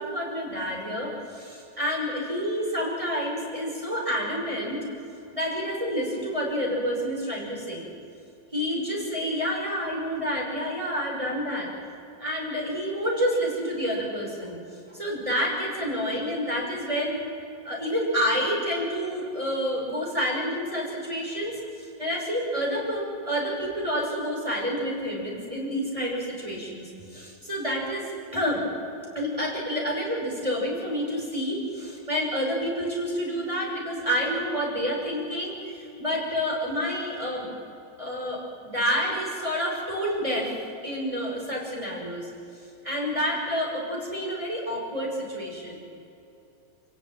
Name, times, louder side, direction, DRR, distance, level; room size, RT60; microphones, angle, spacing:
voice 1, 0.0-4.8 5.3-7.8 8.5-11.7 12.2-14.6 14.9-17.2 17.6-28.6 29.1-37.5 38.0-40.5 40.8-42.3 42.8-45.8, equal, 15° right, -2 dB, 6.1 m, -29 dB
26.5 x 16.5 x 9.2 m, 2.8 s
omnidirectional pair, 2.0 m